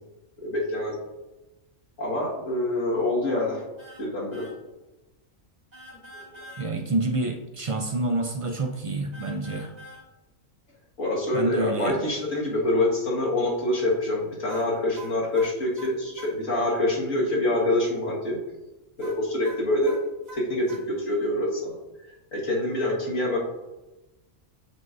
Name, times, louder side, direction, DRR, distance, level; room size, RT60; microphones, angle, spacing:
voice 1, 0.4-0.9 2.0-3.6 4.0-4.5 6.3-6.4 11.0-18.4 19.0-19.9 20.3-21.7 22.3-23.4, left 1 dB, 85° left, -4 dB, 2.2 m, -26 dB
sound 1, 3.8-4.1 4.3-4.6 5.7-6.7 9.1-10.0 14.5-16.3 19.0-20.8, right 1 dB, 30° right, 1.8 m, -44 dB
voice 2, 6.6-9.7 11.3-12.0, right 2 dB, 55° right, 4 dB, 0.3 m, -28 dB
9.3 x 5.6 x 2.6 m, 1.1 s
omnidirectional pair, 1.3 m